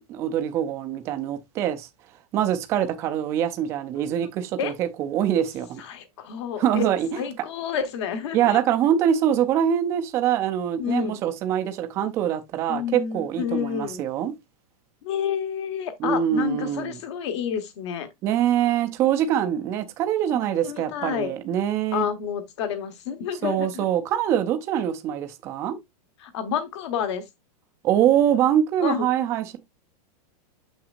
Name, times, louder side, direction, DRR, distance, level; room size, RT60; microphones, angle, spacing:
voice 1, 0.1-1.9 2.3-5.8 6.6-7.1 8.3-14.3 16.0-17.0 18.2-22.1 23.4-25.8 27.8-29.6, right 10 dB, 15° right, 0.4 m, -24 dB
voice 2, 5.8-6.8 7.2-8.6 10.8-11.2 12.7-14.0 15.0-18.1 20.6-21.3 21.9-23.9 26.2-27.2 28.8-29.1, left 8 dB, 45° left, 1.1 m, -29 dB
7.2 x 5.8 x 2.4 m
supercardioid pair, 180°, 20 cm